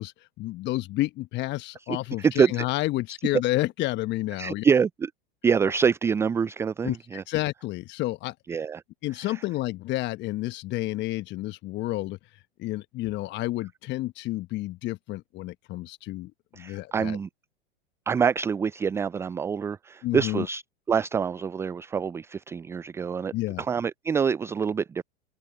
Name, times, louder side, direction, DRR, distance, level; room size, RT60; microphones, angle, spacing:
voice 1, 0.0-4.6 6.8-8.6 9.0-17.2 20.0-20.5 23.3-23.6, left 17 dB, 35° left, 1.2 m, -30 dB
voice 2, 1.9-2.5 4.4-5.1 5.4-7.2 8.5-8.8 9.3-9.4 16.5-17.3 18.1-20.6 20.9-23.3 23.6-25.0, right 6 dB, 10° right, 0.3 m, -26 dB
open air
figure-of-eight pair, 90°, 30 cm